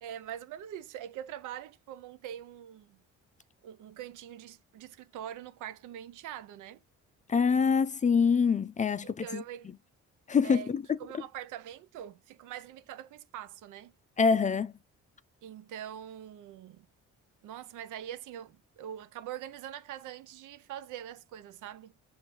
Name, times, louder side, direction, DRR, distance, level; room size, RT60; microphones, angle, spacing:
voice 1, 0.0-3.0 3.6-6.8 9.2-9.7 10.4-10.7 11.0-13.9 15.4-16.9 17.4-21.9, right 10 dB, 85° right, 0.6 m, -43 dB
voice 2, 7.3-9.4 10.3-10.8 14.2-14.7, left 5 dB, 25° left, 0.4 m, -25 dB
6.0 x 2.7 x 3.1 m
cardioid pair, 90°, 30 cm